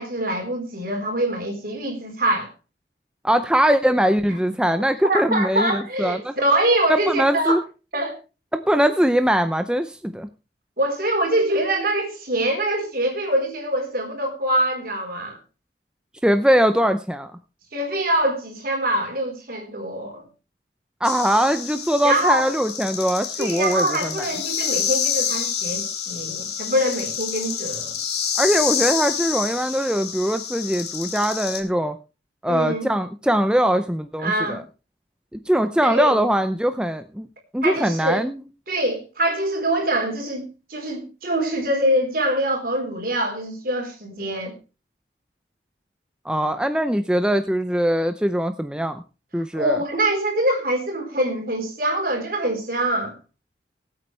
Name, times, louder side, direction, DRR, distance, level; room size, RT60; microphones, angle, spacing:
voice 1, 0.0-2.5 5.0-7.6 7.9-8.1 10.8-15.4 17.7-20.3 22.0-22.5 23.4-28.0 32.5-32.9 34.2-34.6 35.8-36.2 37.6-38.2 38.7-44.5 49.5-53.2, right 1 dB, 55° right, 4.1 m, -24 dB
voice 2, 3.2-6.3 6.9-7.6 8.5-10.3 16.2-17.3 21.0-23.9 24.2-24.3 28.4-32.0 32.4-34.6 35.3-37.3 37.5-38.4 46.2-49.0 49.3-49.8, equal, 5° right, 0.6 m, -21 dB
sound 1, 21.0-31.6, left 8 dB, 65° left, 2.5 m, -28 dB
20.0 x 8.5 x 3.3 m
head